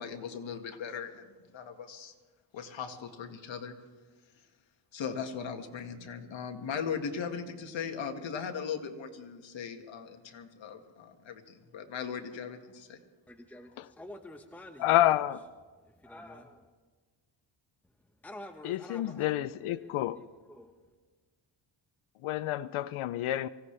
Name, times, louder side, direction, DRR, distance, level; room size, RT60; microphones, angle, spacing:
voice 1, 0.0-2.1 2.5-3.8 4.9-13.0, left 6 dB, 65° left, 1.9 m, -38 dB
voice 2, 13.3-15.0 15.8-16.7 18.2-20.8, left 1 dB, 5° left, 0.9 m, -49 dB
voice 3, 14.8-15.4 18.6-20.2 22.2-23.5, left 14 dB, 85° left, 0.6 m, -28 dB
24.0 x 16.5 x 3.3 m
cardioid pair, 105°, 48 cm